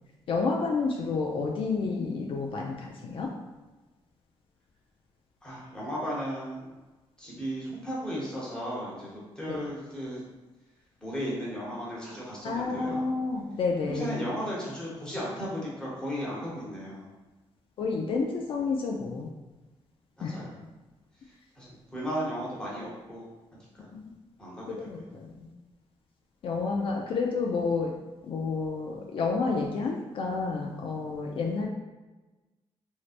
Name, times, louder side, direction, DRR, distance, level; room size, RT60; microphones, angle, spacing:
voice 1, 0.3-3.3 9.5-9.6 12.4-14.2 17.8-19.3 20.2-20.4 23.9-24.1 24.7-25.5 26.4-27.9 28.2-31.7, left 4 dB, 60° left, 0 dB, 0.4 m, -30 dB
voice 2, 5.4-6.7 7.2-10.2 11.0-13.1 13.8-17.1 20.2-20.6 21.6-23.3 23.8-23.9 24.4-24.9, equal, 10° left, -6 dB, 1.0 m, -35 dB
3.2 x 2.7 x 2.5 m, 1.2 s
cardioid pair, 125°, 10 cm